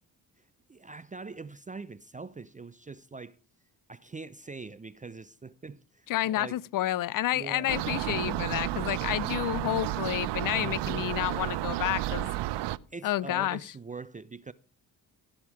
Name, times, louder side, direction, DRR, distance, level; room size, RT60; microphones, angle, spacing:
voice 1, 0.4-3.4 3.9-6.6 7.3-7.8 10.6-11.0 12.9-14.5, right 4 dB, 15° right, 0.5 m, -43 dB
voice 2, 6.1-12.3 13.0-13.6, left 14 dB, 45° left, 0.5 m, -30 dB
sound 1, 7.7-12.8, right 15 dB, 60° right, 0.6 m, -32 dB
16.5 x 5.8 x 4.9 m
hypercardioid pair, 45°, 49 cm